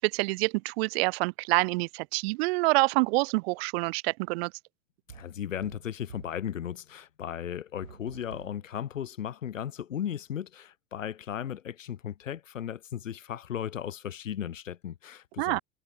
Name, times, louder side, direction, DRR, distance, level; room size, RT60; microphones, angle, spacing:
voice 1, 0.0-4.5 15.4-15.6, right 25 dB, 55° right, 0.6 m, -27 dB
voice 2, 5.1-15.6, left 9 dB, 80° left, 1.2 m, -36 dB
sound 1, 5.1-6.5 7.8-8.7, right 6 dB, 85° right, 1.6 m, -49 dB
figure-of-eight pair, 80°, 38 cm